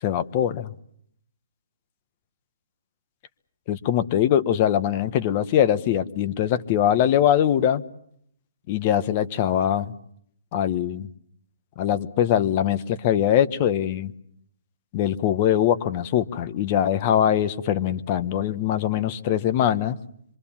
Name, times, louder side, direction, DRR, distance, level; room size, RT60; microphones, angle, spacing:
voice 1, 0.0-0.7 3.7-7.8 8.7-9.9 10.5-11.1 11.8-14.1 14.9-20.0, left 10 dB, 35° left, 12 dB, 1.2 m, -22 dB
26.0 x 24.0 x 7.4 m, 0.70 s
hypercardioid pair, 150°, 0 cm